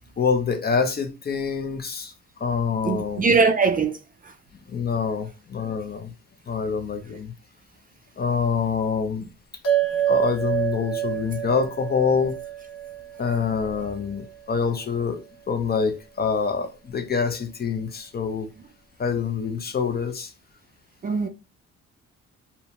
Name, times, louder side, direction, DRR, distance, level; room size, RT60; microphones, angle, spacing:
voice 1, 0.2-2.1 2.4-3.3 4.7-6.1 6.5-7.3 8.2-9.3 10.1-12.4 13.2-18.5 19.0-20.3, left 5 dB, 35° left, 0.5 m, -26 dB
voice 2, 2.8-4.0 4.2-4.3 21.0-21.3, right 4 dB, 30° right, 0.4 m, -21 dB
sound 1, 9.6-14.3, right 11 dB, 55° left, 1.1 m, -28 dB
2.7 x 2.1 x 2.8 m
cardioid pair, 90°, 30 cm